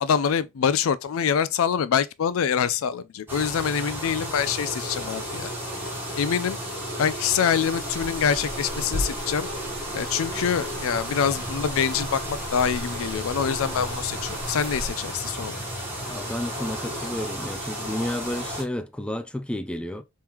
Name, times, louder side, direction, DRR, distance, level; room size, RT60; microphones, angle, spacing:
voice 1, 0.0-5.5 6.2-6.6 7.0-9.5 9.9-15.6, left 7 dB, 80° left, 0.4 m, -25 dB
sound 1, 3.3-18.6, equal, 10° right, 1.4 m, -33 dB
sound 2, 7.6-14.9, equal, 50° right, 1.2 m, -38 dB
voice 2, 16.1-20.0, left 1 dB, 5° left, 0.3 m, -31 dB
3.6 x 3.1 x 2.9 m
head